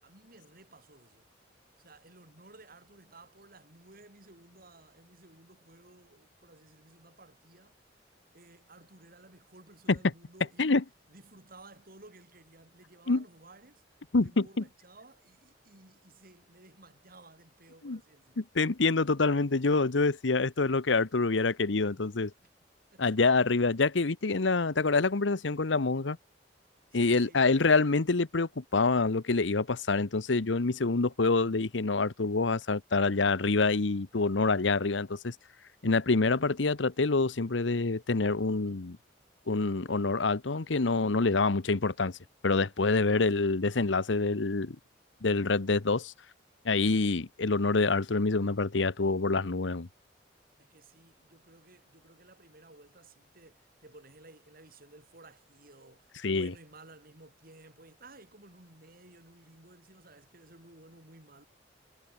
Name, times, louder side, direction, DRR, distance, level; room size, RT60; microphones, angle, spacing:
voice 1, 0.0-1.3 1.8-7.8 8.3-10.7 11.1-18.4 22.4-22.5 22.9-23.2 26.9-27.8 43.0-43.2 50.6-61.4, right 2 dB, 55° right, 7.6 m, -56 dB
voice 2, 14.1-14.6 17.8-18.0 18.4-22.3 23.0-26.2 26.9-35.3 35.8-39.0 39.5-42.2 42.4-44.8 45.2-46.1 46.6-49.9 56.2-56.5, left 3 dB, 85° left, 1.0 m, -26 dB
head